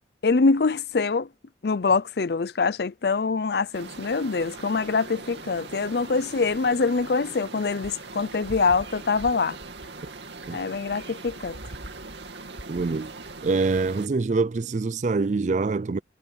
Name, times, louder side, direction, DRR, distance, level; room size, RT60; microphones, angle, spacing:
voice 1, 0.2-1.3 1.6-9.6 10.5-11.6, left 4 dB, 60° left, 0.5 m, -24 dB
sound 1, 3.7-14.1, right 3 dB, 70° right, 2.6 m, -40 dB
voice 2, 12.7-13.1 13.4-16.0, right 3 dB, 40° right, 0.4 m, -25 dB
head